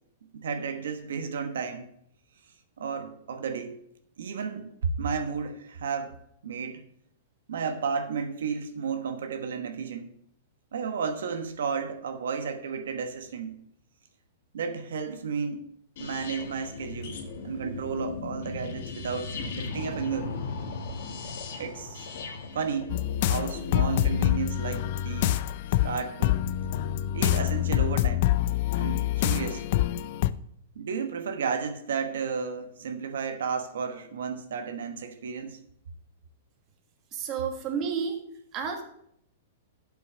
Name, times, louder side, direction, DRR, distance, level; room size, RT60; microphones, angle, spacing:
voice 1, 0.3-1.9 2.8-3.8 4.2-6.1 6.4-6.8 7.5-10.1 10.7-13.5 14.5-15.7 16.0-20.3 21.5-22.1 22.5-25.4 25.8-26.4 27.1-28.3 28.7-29.7 30.7-35.6, right 6 dB, 85° right, 7 dB, 1.1 m, -33 dB
sound 1, 16.0-23.8, left 4 dB, 65° left, 1.9 m, -37 dB
sound 2, 22.9-30.3, left 13 dB, 50° left, 0.4 m, -26 dB
voice 2, 37.1-38.2 38.5-38.8, right 6 dB, 30° right, 4 dB, 1.5 m, -30 dB
7.8 x 6.1 x 6.2 m, 0.71 s
hypercardioid pair, 155°, 0 cm